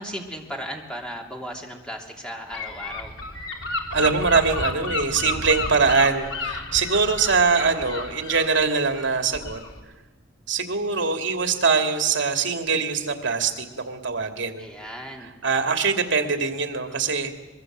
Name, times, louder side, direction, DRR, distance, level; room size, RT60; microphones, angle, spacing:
voice 1, 0.0-3.1 14.6-15.3, equal, 5° left, 1 dB, 3.0 m, -36 dB
Gull seagull / Wind, 2.5-9.8, left 3 dB, 80° left, 3.3 m, -32 dB
voice 2, 3.9-9.6 10.5-14.7 15.4-17.3, right 4 dB, 70° right, 6 dB, 2.7 m, -23 dB
24.0 x 22.5 x 7.6 m, 1.3 s
head